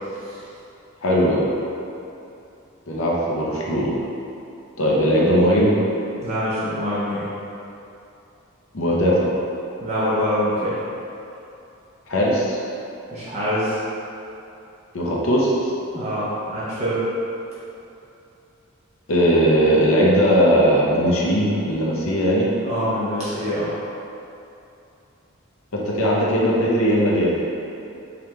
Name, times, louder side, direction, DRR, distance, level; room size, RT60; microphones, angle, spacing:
voice 1, 1.0-1.5 2.9-4.0 4.8-5.7 8.7-9.3 12.1-12.6 14.9-15.7 19.1-22.5 25.7-27.4, equal, 75° left, -4 dB, 0.7 m, -19 dB
voice 2, 6.2-7.2 9.8-10.8 13.1-13.8 15.9-17.0 22.6-23.7, equal, 30° right, -11 dB, 0.7 m, -24 dB
4.9 x 2.3 x 3.0 m, 2.8 s
head